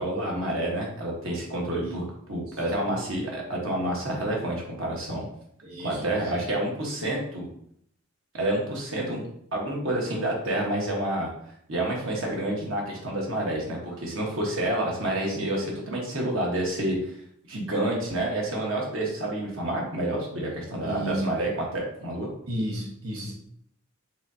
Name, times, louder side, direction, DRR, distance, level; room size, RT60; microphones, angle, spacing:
voice 1, 0.0-5.2 5.8-7.5 8.3-9.2 9.5-11.3 11.7-17.1 17.5-22.3, right 1 dB, 65° right, -2 dB, 1.3 m, -29 dB
voice 2, 5.6-6.1 20.8-21.2 22.5-23.3, equal, 85° right, -1 dB, 1.1 m, -32 dB
4.8 x 3.7 x 2.7 m, 0.69 s
head